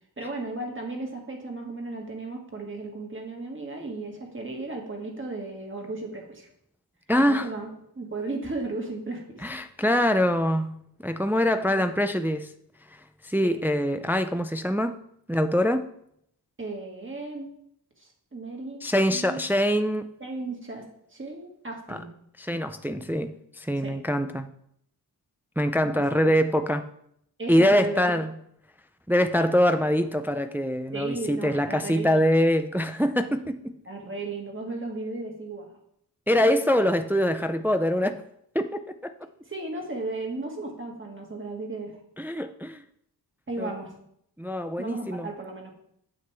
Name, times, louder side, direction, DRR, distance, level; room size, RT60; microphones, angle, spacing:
voice 1, 0.2-6.5 7.2-7.7 8.0-9.5 11.7-11.9 12.1-12.2 16.6-17.5 18.0-18.8 19.1-19.4 20.2-20.8 21.1-22.1 23.8-23.9 25.8-26.0 27.4-28.1 30.9-32.2 33.9-35.7 39.5-42.0 43.5-43.9 44.8-45.7, right 2 dB, 30° right, 1.9 m, -35 dB
voice 2, 7.1-7.5 9.4-12.5 13.2-15.0 15.3-15.9 18.8-20.1 21.9-22.0 22.4-24.5 25.6-26.9 27.5-28.3 29.1-33.8 36.3-38.2 38.5-39.1 40.4-40.5 42.2-42.8 43.6-43.7 44.4-45.3, equal, 5° right, 0.4 m, -24 dB
9.5 x 7.7 x 3.4 m
wide cardioid pair, 130°, 40 cm